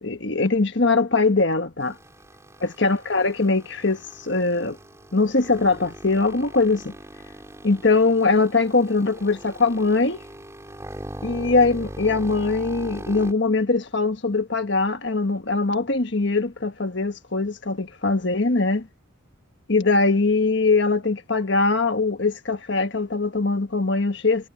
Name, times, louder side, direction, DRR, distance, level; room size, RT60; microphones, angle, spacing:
voice 1, 0.0-2.0 2.8-4.8 5.1-6.9 7.6-10.2 11.2-18.9 19.7-24.5, left 3 dB, 60° left, 1.4 m, -21 dB
sound 1, 1.8-13.3, right 1 dB, 15° right, 3.6 m, -40 dB
head